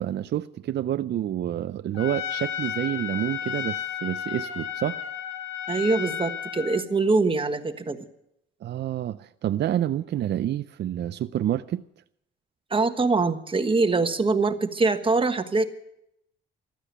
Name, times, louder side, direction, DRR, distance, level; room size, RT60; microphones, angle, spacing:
voice 1, 0.0-5.0 8.6-11.8, right 11 dB, 60° right, 0.5 m, -28 dB
Trumpet, 1.9-6.8, left 9 dB, 75° left, 2.1 m, -33 dB
voice 2, 5.7-8.0 12.7-15.6, right 3 dB, 25° right, 1.4 m, -23 dB
15.0 x 12.0 x 7.9 m
cardioid pair, 90°, 20 cm